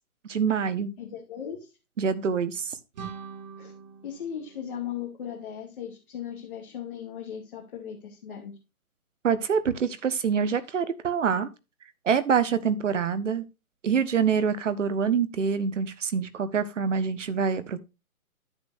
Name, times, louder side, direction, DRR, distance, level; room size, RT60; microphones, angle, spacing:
voice 1, 0.2-0.9 2.0-2.7 9.2-11.5 12.0-13.4 13.8-17.8, right 6 dB, 55° right, 1.3 m, -25 dB
voice 2, 1.0-1.7 3.6-3.7 4.0-8.6, left 9 dB, 35° left, 2.5 m, -37 dB
sound 1, 2.9-5.7, right 6 dB, 30° right, 2.5 m, -44 dB
10.5 x 8.3 x 2.6 m
hypercardioid pair, 165°, 44 cm